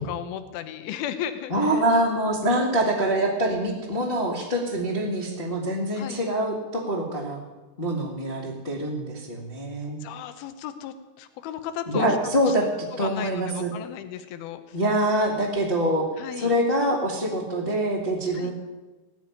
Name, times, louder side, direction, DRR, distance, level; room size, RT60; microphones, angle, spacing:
voice 1, 0.0-1.9 6.0-6.2 10.0-12.2 12.5-12.6 13.0-14.8 16.2-16.5 18.3-18.5, left 9 dB, 75° left, 9 dB, 2.8 m, -35 dB
voice 2, 1.5-7.4 7.8-10.0 11.9-12.6 13.0-13.7 14.7-16.1 16.4-18.5, right 1 dB, 30° left, -3 dB, 1.0 m, -25 dB
18.5 x 6.9 x 9.5 m, 1.2 s
omnidirectional pair, 4.5 m